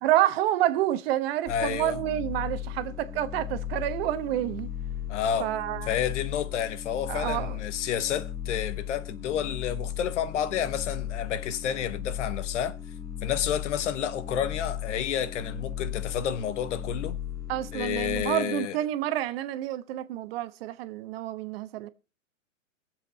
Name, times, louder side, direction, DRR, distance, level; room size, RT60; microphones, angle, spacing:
voice 1, 0.0-4.7 5.4-5.9 7.1-7.6 17.5-21.9, right 13 dB, 45° right, 1.2 m, -28 dB
voice 2, 1.5-2.0 5.1-5.5 5.9-12.8 13.2-17.2 17.7-18.8, left 9 dB, 60° left, 1.1 m, -30 dB
sound 1, 1.5-18.3, left 10 dB, 10° left, 1.1 m, -36 dB
21.0 x 7.7 x 4.1 m
hypercardioid pair, 120°, 40 cm